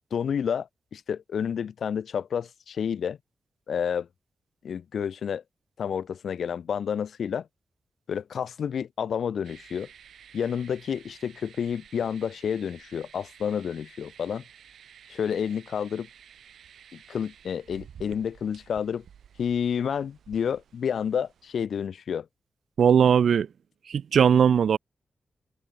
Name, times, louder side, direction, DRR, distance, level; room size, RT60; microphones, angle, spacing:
voice 1, 0.1-3.2 3.7-4.1 4.6-5.4 5.8-7.5 8.1-9.9 10.3-14.4 15.1-16.1 16.9-19.0 19.4-22.3, left 7 dB, 70° left, 1.9 m, -30 dB
sound 1, 9.4-21.6, right 8 dB, 85° right, 7.0 m, -52 dB
voice 2, 22.8-23.5 23.9-24.8, right 7 dB, 70° right, 0.6 m, -19 dB
wide cardioid pair, 150°, 0 cm